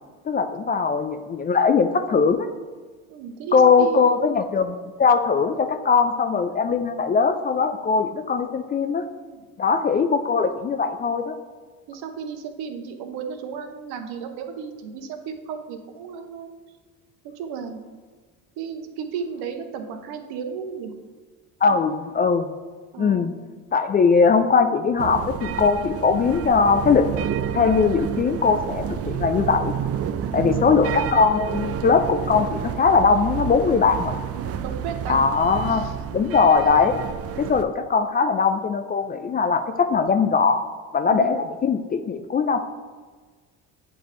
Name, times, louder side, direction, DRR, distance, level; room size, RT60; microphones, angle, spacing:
voice 1, 0.3-2.5 3.5-9.1 9.6-11.3 21.6-22.5 23.0-23.3 23.7-27.1 27.5-29.7 30.3-34.2 35.1-37.0 37.4-40.6 40.9-42.6, left 5 dB, 25° left, 8 dB, 0.3 m, -20 dB
voice 2, 3.1-4.4 9.3-9.4 11.9-16.5 17.4-17.8 18.6-20.9 21.6-21.8 22.9-23.3 30.2-30.7 34.3-35.2 35.7-36.2 41.1-41.4, right 6 dB, 70° right, 6 dB, 0.9 m, -34 dB
sound 1, 25.0-37.6, right 9 dB, 40° right, 0.4 m, -30 dB
7.9 x 3.3 x 3.8 m, 1.4 s
supercardioid pair, 75°, 39 cm